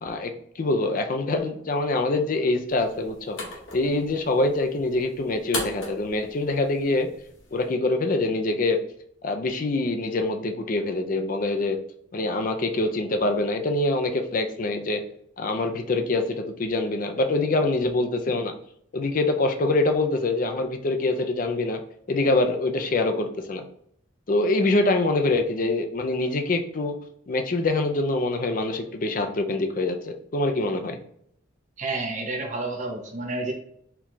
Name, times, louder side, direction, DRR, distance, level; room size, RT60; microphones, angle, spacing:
voice 1, 0.0-3.4 3.7-7.1 7.5-8.8 9.2-11.8 12.1-15.0 15.4-18.5 18.9-21.8 22.1-23.6 24.3-27.0 27.3-31.0, left 2 dB, 45° left, 6 dB, 0.4 m, -25 dB
sound 1, 2.7-7.7, left 2 dB, 75° left, 1.2 m, -38 dB
voice 2, 31.8-33.5, right 2 dB, 40° right, 1 dB, 0.5 m, -30 dB
4.5 x 2.3 x 3.8 m, 0.70 s
head